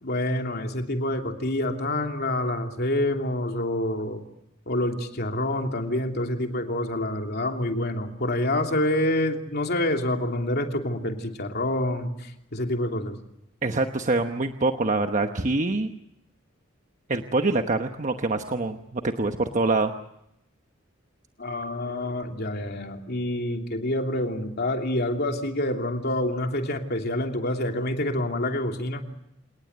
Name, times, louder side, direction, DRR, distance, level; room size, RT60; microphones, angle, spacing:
voice 1, 0.0-4.2 4.7-13.2 21.4-29.0, left 1 dB, 50° left, 3 dB, 3.0 m, -27 dB
voice 2, 13.6-15.9 17.1-19.9, right 3 dB, 40° right, 6 dB, 1.1 m, -25 dB
27.5 x 19.5 x 8.1 m, 0.83 s
head